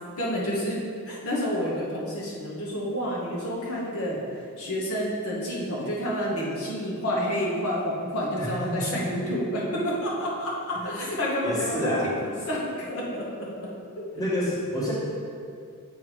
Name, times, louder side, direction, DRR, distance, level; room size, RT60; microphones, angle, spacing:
voice 1, 0.2-0.8 1.1-4.2 4.6-14.0, equal, 70° left, -5 dB, 1.2 m, -29 dB
voice 2, 8.4-9.1 11.4-12.1 14.1-14.9, equal, 15° left, -7 dB, 1.3 m, -28 dB
7.3 x 3.6 x 4.7 m, 2.3 s
head